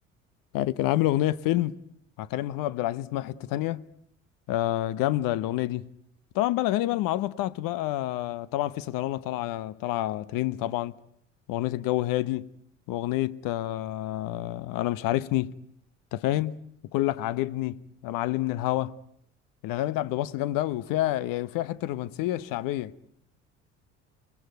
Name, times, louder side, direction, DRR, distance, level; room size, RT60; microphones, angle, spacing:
voice 1, 0.5-1.8 2.2-3.8 4.5-5.9 6.3-10.9 11.5-12.5 12.9-15.5 16.1-16.6 16.9-19.0 19.6-22.9, left 15 dB, 60° left, 1.1 m, -28 dB
28.0 x 21.0 x 9.4 m
hypercardioid pair, 60°, 37 cm